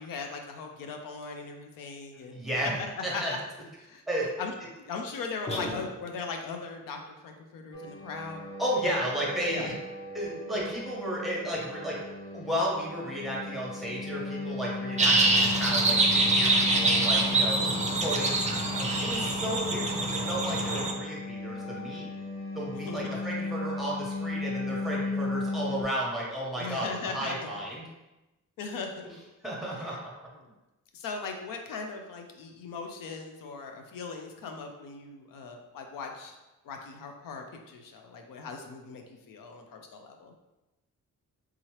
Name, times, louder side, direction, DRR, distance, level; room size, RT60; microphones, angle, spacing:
voice 1, 0.0-2.4 2.6-3.4 3.8-4.0 4.4-4.5 4.8-8.4 9.5-9.7 17.5-17.9 22.7-23.2 26.6-27.4 28.6-29.1 29.9-30.0 30.9-36.4 36.6-40.3, left 4 dB, 85° left, 4 dB, 0.5 m, -39 dB
voice 2, 2.3-2.7 3.0-3.3 4.1-4.3 8.6-9.7 10.1-18.5 19.0-22.1 22.5-27.8 29.4-29.9, equal, ahead, -4 dB, 1.0 m, -33 dB
sound 1, 5.5-6.4, left 1 dB, 20° left, 0.7 m, -36 dB
sound 2, 7.7-25.8, left 3 dB, 45° left, 0.9 m, -36 dB
sound 3, 15.0-20.9, right 2 dB, 20° right, 0.5 m, -25 dB
3.6 x 2.9 x 3.0 m, 1.0 s
cardioid pair, 105°, 32 cm